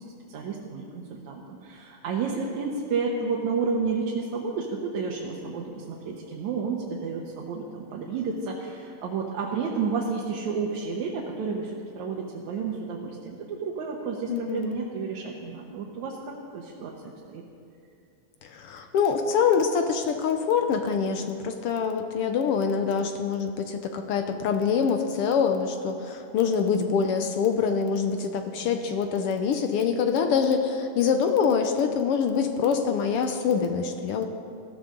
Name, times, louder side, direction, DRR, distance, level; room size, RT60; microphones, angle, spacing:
voice 1, 0.3-17.4, right 5 dB, 80° right, -2 dB, 2.5 m, -31 dB
voice 2, 14.3-14.8 18.4-34.3, left 6 dB, 70° left, 6 dB, 1.4 m, -25 dB
19.0 x 14.5 x 3.8 m, 2.5 s
omnidirectional pair, 3.3 m